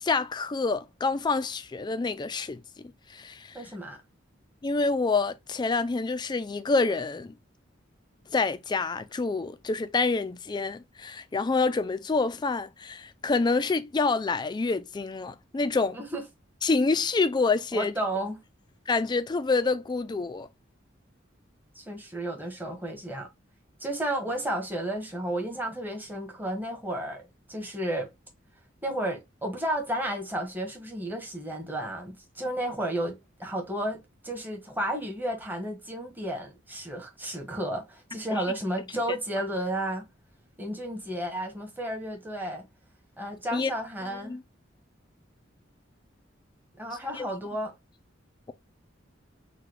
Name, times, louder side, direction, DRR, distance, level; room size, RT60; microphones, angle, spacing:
voice 1, 0.0-3.6 4.6-7.3 8.3-16.0 16.6-17.9 18.9-20.5 38.3-38.4 43.5-43.7 44.2-44.4 47.1-47.3, left 3 dB, 25° left, 0.3 m, -27 dB
voice 2, 3.5-4.0 15.9-16.2 17.7-18.4 21.7-23.3 23.8-27.2 27.5-28.1 28.8-40.1 40.6-42.7 43.2-44.4 46.8-47.7, right 1 dB, 10° right, 1.0 m, -32 dB
3.8 x 2.2 x 3.1 m
head